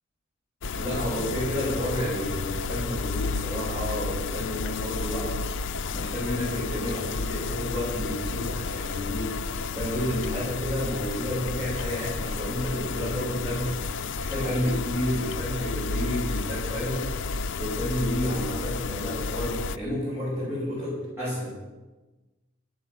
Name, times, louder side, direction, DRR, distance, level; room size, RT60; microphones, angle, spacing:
sound 1, 0.6-19.8, left 4 dB, 60° left, 0.6 m, -31 dB
voice 1, 0.7-5.3 5.9-9.4 9.7-17.1 17.6-21.6, equal, 10° right, -10 dB, 7.0 m, -31 dB
14.5 x 9.8 x 7.7 m, 1.1 s
head